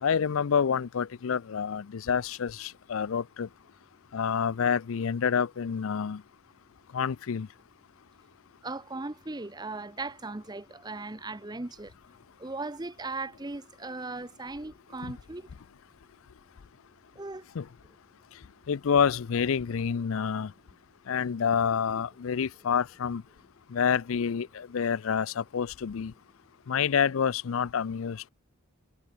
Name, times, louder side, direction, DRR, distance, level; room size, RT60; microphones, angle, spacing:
voice 1, 0.0-3.5 4.1-6.2 6.9-7.5 15.0-15.1 17.5-17.7 18.7-20.5 21.1-23.2 23.7-26.1 26.7-28.3, left 7 dB, 70° left, 0.4 m, -28 dB
voice 2, 8.6-11.9 12.4-15.4 17.2-17.4, right 3 dB, 20° right, 0.7 m, -38 dB
head